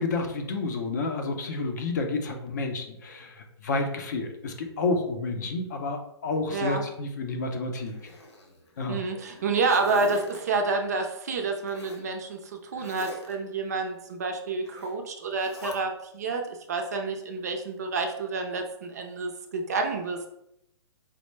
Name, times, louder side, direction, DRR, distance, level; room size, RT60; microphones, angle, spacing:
voice 1, 0.0-8.0 8.8-9.0, left 3 dB, 40° left, 4 dB, 0.5 m, -30 dB
voice 2, 6.5-6.8 8.9-20.3, right 3 dB, 35° right, 3 dB, 0.4 m, -29 dB
Zipper (clothing), 7.9-8.8 9.3-10.4 11.7-12.1 12.7-13.3 14.6-14.9 15.3-15.7, left 1 dB, 85° left, 1.0 m, -42 dB
4.3 x 2.1 x 3.1 m, 0.81 s
hypercardioid pair, 165°, 14 cm